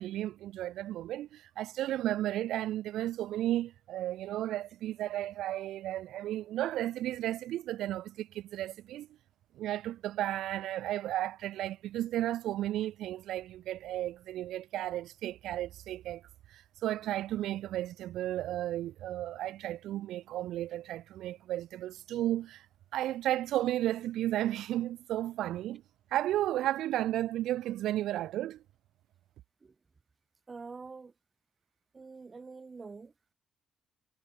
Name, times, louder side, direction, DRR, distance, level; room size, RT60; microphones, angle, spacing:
voice 1, 0.0-9.1 9.5-16.2 16.5-22.7 22.9-25.8 26.1-28.6, right 13 dB, 85° right, 0.5 m, -33 dB
voice 2, 30.5-31.1 31.9-33.1, right 4 dB, 30° right, 0.5 m, -46 dB
cardioid pair, 90°, 0 cm